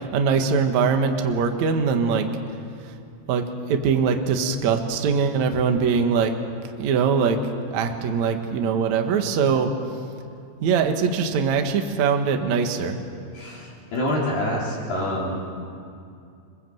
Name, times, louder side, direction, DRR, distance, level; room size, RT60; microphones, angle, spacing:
voice 1, 0.0-2.3 3.3-6.4 6.7-7.4 7.7-9.7 10.6-13.0, right 6 dB, 65° right, 5 dB, 1.9 m, -22 dB
voice 2, 13.3-15.4, left 1 dB, 55° left, -7 dB, 6.0 m, -26 dB
27.0 x 22.0 x 7.9 m, 2.5 s
omnidirectional pair, 5.4 m